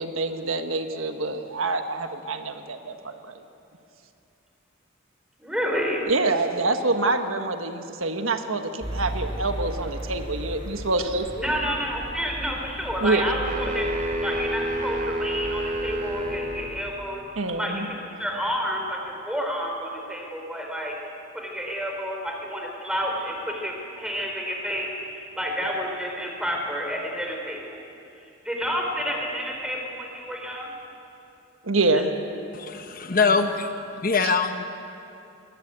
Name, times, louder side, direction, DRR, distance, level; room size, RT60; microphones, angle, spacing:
voice 1, 0.0-3.3 6.1-11.3 13.0-13.2 17.4-17.9 31.6-32.1, right 3 dB, 80° right, 6 dB, 1.4 m, -26 dB
voice 2, 5.4-6.0 11.4-17.2 17.6-19.0 19.3-21.0 21.3-27.8 28.4-30.7, equal, 5° right, 0 dB, 4.3 m, -30 dB
sound 1, 8.8-16.9, right 1 dB, 25° right, 5.3 m, -36 dB
sound 2, 13.4-16.8, right 1 dB, 45° right, 2.6 m, -29 dB
voice 3, 32.5-33.7 34.0-34.7, left 4 dB, 45° left, 7 dB, 1.0 m, -23 dB
22.5 x 20.5 x 8.9 m, 2.7 s
head